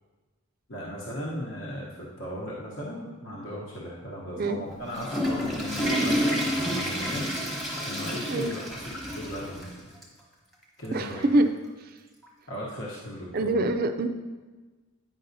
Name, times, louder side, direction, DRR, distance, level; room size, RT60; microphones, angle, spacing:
voice 1, 0.7-7.4 7.8-9.8 10.8-11.2 12.5-13.6, equal, 60° left, -5 dB, 1.0 m, -37 dB
Water / Toilet flush, 4.7-9.7 10.0-10.1 10.8-10.9 12.2-12.3, equal, ahead, 1.0 m, -29 dB
voice 2, 10.9-11.5 13.3-14.1, right 2 dB, 40° right, 8 dB, 0.3 m, -24 dB
9.2 x 5.4 x 2.7 m, 1.3 s
head